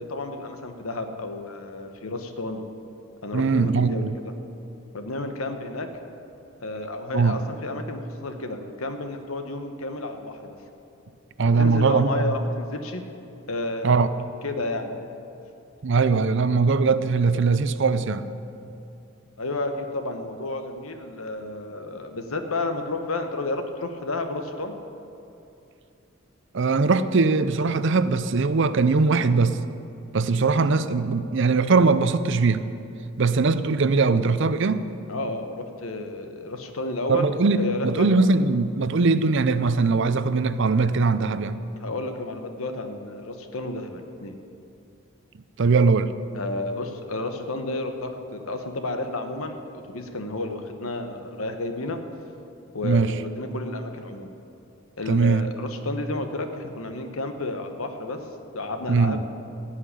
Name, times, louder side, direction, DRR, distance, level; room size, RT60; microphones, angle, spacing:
voice 1, 0.0-2.6 3.2-4.1 4.9-5.9 6.6-10.6 11.6-13.0 13.5-14.1 14.4-15.0 19.4-24.8 35.1-37.3 37.6-38.1 41.8-44.4 46.3-52.0 52.7-54.3 55.0-58.2 58.5-59.2, left 2 dB, 75° left, 6 dB, 1.2 m, -31 dB
voice 2, 3.3-4.1 7.1-7.4 11.4-12.3 13.8-14.1 15.8-18.3 26.5-29.6 30.1-32.7 33.2-34.8 37.1-41.6 45.6-46.1 52.8-53.1 55.1-55.5 58.9-59.2, right 4 dB, 55° right, 13 dB, 0.5 m, -21 dB
16.5 x 5.7 x 9.9 m, 2.7 s
head